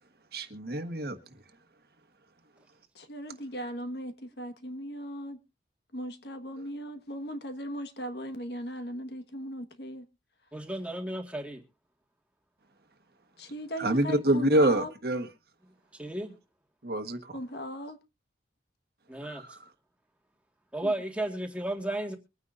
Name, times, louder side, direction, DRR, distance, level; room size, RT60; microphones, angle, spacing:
voice 1, 0.3-1.2 13.8-15.3 16.8-17.3 19.2-19.6, right 1 dB, 55° right, 1.4 m, -26 dB
voice 2, 2.9-5.4 5.9-10.1 13.4-14.9 17.3-18.0 20.8-20.9, equal, 65° left, 1.5 m, -38 dB
voice 3, 10.5-11.6 15.9-16.4 19.1-19.4 20.7-22.2, right 1 dB, 5° right, 1.8 m, -33 dB
23.5 x 9.7 x 2.6 m
head